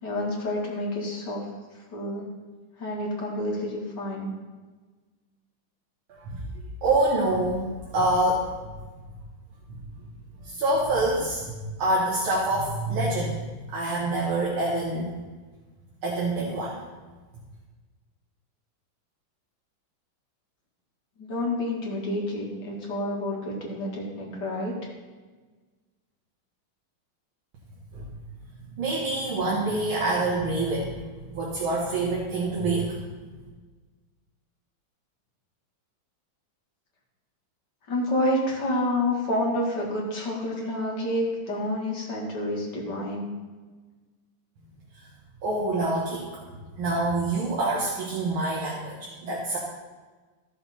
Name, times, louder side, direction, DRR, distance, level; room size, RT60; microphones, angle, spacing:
voice 1, 0.0-1.5 1.7-2.3 2.8-4.3 21.2-24.7 37.9-43.3, left 1 dB, 55° left, -2 dB, 2.5 m, -29 dB
voice 2, 6.1-6.4 6.8-7.7 7.9-8.5 10.4-13.4 13.7-15.1 16.0-16.8 27.9-28.1 28.8-31.0 31.3-33.0 45.4-46.4 46.8-49.6, right 2 dB, 85° right, -4 dB, 2.3 m, -26 dB
14.0 x 6.8 x 4.3 m, 1.3 s
omnidirectional pair, 2.2 m